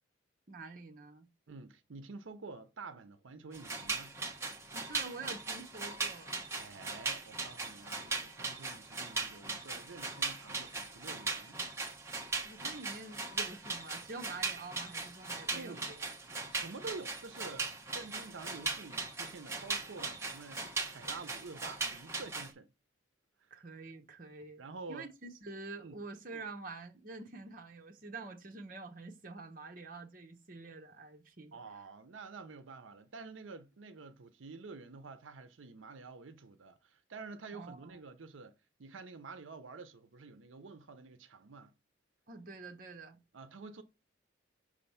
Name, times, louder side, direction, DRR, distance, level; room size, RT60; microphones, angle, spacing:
voice 1, 0.5-1.3 4.7-6.4 12.5-16.0 23.5-24.6 24.9-31.6 37.5-38.0 42.3-43.2, right 3 dB, 45° right, 0.9 m, -47 dB
voice 2, 1.5-4.2 6.6-11.6 15.5-15.9 16.5-22.7 23.4-23.5 24.6-25.1 25.8-26.0 31.5-41.8 43.3-43.8, right 4 dB, 85° right, 0.7 m, -49 dB
sound 1, 3.5-22.5, right 4 dB, 15° right, 1.1 m, -39 dB
6.3 x 3.3 x 5.6 m
head